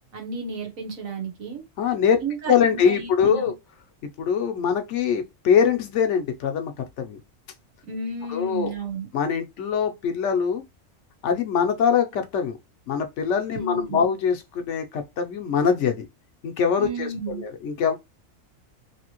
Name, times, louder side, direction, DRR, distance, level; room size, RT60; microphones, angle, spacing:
voice 1, 0.1-1.6 2.2-3.5 7.9-9.1 13.5-14.1 16.8-17.4, right 3 dB, 90° right, 1.6 m, -32 dB
voice 2, 1.8-2.2 2.5-3.5 4.2-6.7 7.0-7.2 8.3-8.7 9.1-10.6 11.2-12.6 12.9-16.1 16.4-17.1 17.4-18.0, left 7 dB, 65° left, 0.9 m, -23 dB
3.3 x 2.8 x 2.9 m
omnidirectional pair, 1.4 m